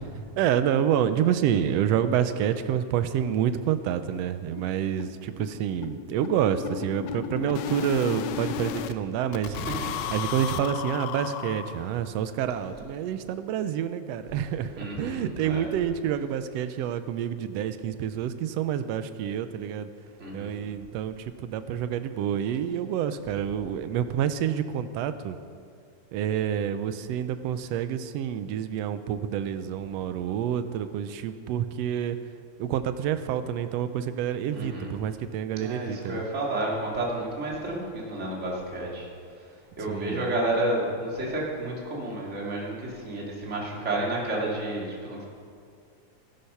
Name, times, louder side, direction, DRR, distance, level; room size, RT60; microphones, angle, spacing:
voice 1, 0.4-9.6 10.1-19.9 20.3-25.4 26.1-32.2 32.6-36.2 39.9-40.3, right 9 dB, 75° right, 11 dB, 1.6 m, -28 dB
sound 1, 2.1-2.2 2.5-2.6 2.9-3.0 3.3-3.5 3.7-8.9 9.3-12.1, left 10 dB, 80° left, 1.8 m, -35 dB
voice 2, 9.5-10.1 14.8-15.6 20.2-20.6 34.5-34.9 35.5-39.1 39.8-45.3, right 1 dB, 25° right, -4 dB, 2.6 m, -31 dB
15.5 x 11.5 x 5.6 m, 2.3 s
omnidirectional pair, 3.4 m